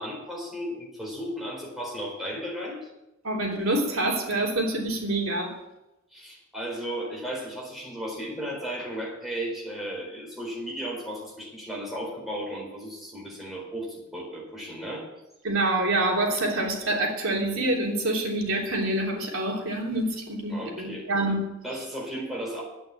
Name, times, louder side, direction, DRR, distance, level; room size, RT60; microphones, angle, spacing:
voice 1, 0.0-2.9 6.1-15.1 20.5-21.1 21.6-22.6, equal, ahead, -3 dB, 4.3 m, -35 dB
voice 2, 3.2-5.5 15.4-21.4, right 1 dB, 80° right, -1 dB, 3.2 m, -26 dB
11.5 x 9.0 x 8.5 m, 0.93 s
head